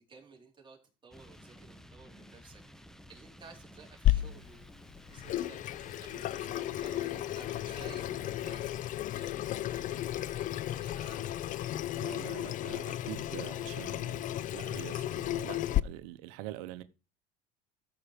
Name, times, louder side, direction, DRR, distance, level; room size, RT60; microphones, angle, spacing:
voice 1, 0.1-2.6 3.1-4.7 5.1-8.6 9.1-11.4, right 5 dB, 25° right, 4.5 m, -54 dB
sound 1, 1.1-8.8, equal, 5° left, 1.0 m, -53 dB
Water tap faucet / Sink (filling or washing), 4.0-15.8, left 13 dB, 45° left, 0.5 m, -33 dB
voice 2, 11.9-16.8, right 15 dB, 80° right, 0.8 m, -45 dB
14.5 x 5.9 x 5.1 m
supercardioid pair, 100°, 19 cm